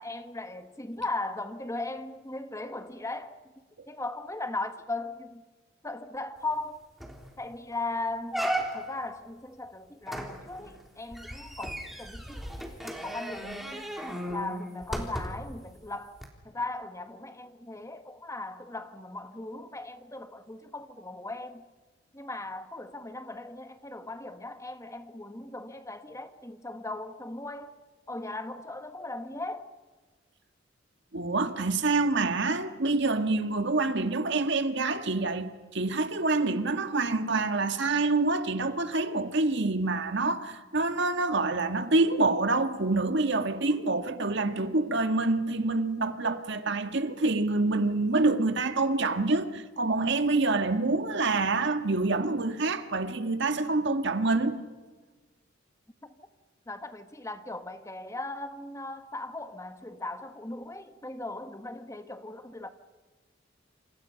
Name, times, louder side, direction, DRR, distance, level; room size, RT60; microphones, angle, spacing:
voice 1, 0.0-3.3 3.9-5.4 5.8-6.8 7.4-13.9 14.3-16.2 16.4-21.7 22.1-27.7 28.1-29.7 56.7-62.7, left 2 dB, 15° left, 1.5 m, -38 dB
sound 1, 6.6-6.7 7.0-7.3 7.7-7.8 8.3-9.1 10.1-15.6 16.2-16.3, right 1 dB, ahead, 3.6 m, -35 dB
voice 2, 31.1-54.6, right 3 dB, 65° right, 1.8 m, -27 dB
28.5 x 28.0 x 5.8 m
head